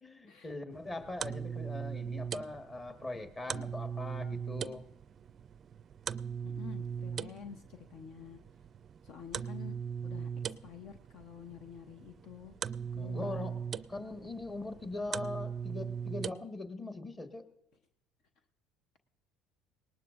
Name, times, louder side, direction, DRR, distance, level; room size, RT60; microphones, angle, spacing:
voice 1, 0.0-4.8 13.0-13.6 13.9-17.4, left 2 dB, 25° left, 7 dB, 1.5 m, -41 dB
sound 1, 0.7-16.3, right 7 dB, 45° right, 0.4 m, -40 dB
voice 2, 6.4-8.4 9.0-9.8 10.0-12.5 13.0-13.5, left 8 dB, 60° left, 7 dB, 0.8 m, -49 dB
19.0 x 19.0 x 2.5 m, 0.85 s
hypercardioid pair, 75°, 0 cm